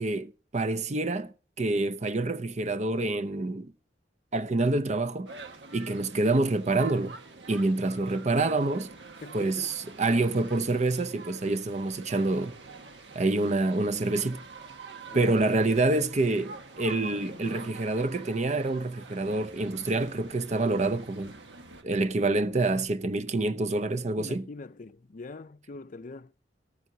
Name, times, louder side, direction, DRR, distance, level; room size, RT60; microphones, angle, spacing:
voice 1, 0.0-3.7 4.3-5.3 5.7-7.2 7.5-8.9 9.3-12.5 13.1-14.4 15.1-21.3 21.8-24.5, right 2 dB, 40° right, 0.7 m, -27 dB
sound 1, 5.3-21.8, right 3 dB, 75° right, 1.6 m, -46 dB
voice 2, 9.2-9.7 15.1-15.6 17.3-17.8 24.2-26.3, left 3 dB, 45° left, 0.5 m, -43 dB
14.0 x 14.0 x 2.8 m
head